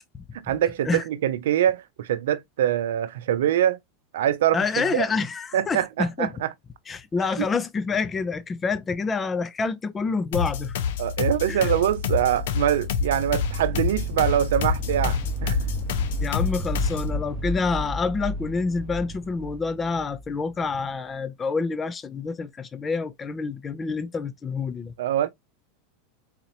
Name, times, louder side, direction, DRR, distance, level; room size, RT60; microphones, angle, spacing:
voice 1, 0.4-3.8 4.1-4.6 4.9-5.0 5.5-6.5 7.4-7.5 11.0-15.6 25.0-25.3, right 11 dB, 80° right, 0.5 m, -24 dB
voice 2, 4.5-6.3 6.9-10.8 11.5-11.7 16.2-24.9, left 4 dB, 20° left, 0.5 m, -27 dB
sound 1, 10.3-17.2, left 7 dB, 75° left, 0.6 m, -28 dB
sound 2, 11.2-20.9, equal, 40° right, 0.7 m, -32 dB
4.0 x 2.9 x 2.7 m
hypercardioid pair, 115°, 0 cm